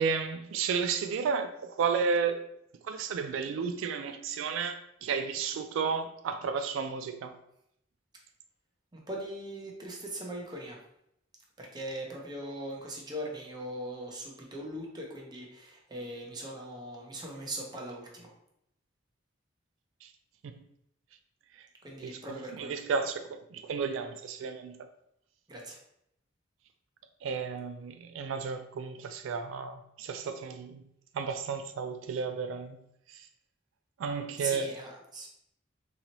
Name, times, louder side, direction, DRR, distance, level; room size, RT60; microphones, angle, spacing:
voice 1, 0.0-2.4 2.8-7.4 20.0-20.1 22.0-22.2 22.5-24.9 27.2-30.8 31.1-32.8 33.1-33.3 34.0-34.7, right 5 dB, 80° right, 0.3 m, -32 dB
voice 2, 8.9-10.8 11.6-18.3 21.8-22.8 25.5-25.8 34.4-35.3, right 1 dB, 20° right, 0.6 m, -40 dB
3.9 x 2.9 x 2.9 m
head